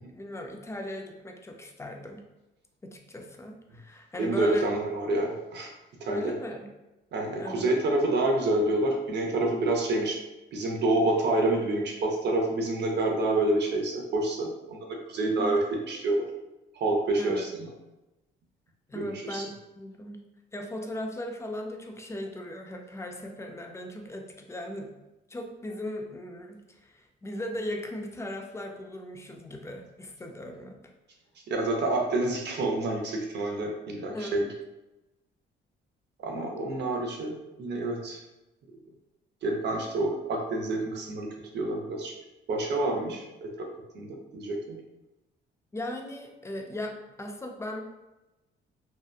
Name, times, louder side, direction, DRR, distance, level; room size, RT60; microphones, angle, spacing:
voice 1, 0.1-2.2 2.8-4.7 6.1-6.7 7.4-7.7 15.2-15.5 17.2-17.5 18.9-20.2 20.5-24.9 25.3-30.8 34.1-34.5 45.7-47.8, left 1 dB, 15° left, 3 dB, 0.4 m, -38 dB
voice 2, 4.2-5.7 6.0-6.3 7.1-10.2 10.5-16.3 16.8-17.7 18.9-19.4 31.5-34.4 36.2-37.3 37.6-38.2 39.4-41.3 41.5-42.1 42.5-43.7 43.9-44.1 44.3-44.8, right 2 dB, 60° right, 1 dB, 0.6 m, -28 dB
2.8 x 2.1 x 2.3 m, 0.99 s
cardioid pair, 90°, 20 cm